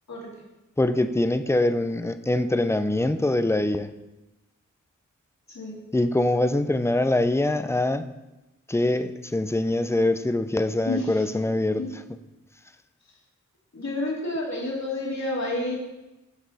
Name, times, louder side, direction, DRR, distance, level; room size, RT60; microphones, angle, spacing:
voice 1, 0.8-3.9 5.9-8.1 8.7-11.8, left 1 dB, 10° left, 10 dB, 0.6 m, -23 dB
voice 2, 5.5-5.8 10.8-11.3 11.8-12.0 13.7-15.8, left 2 dB, 60° left, -3 dB, 2.7 m, -29 dB
13.0 x 5.9 x 4.1 m, 1.0 s
wide cardioid pair, 60°, 32 cm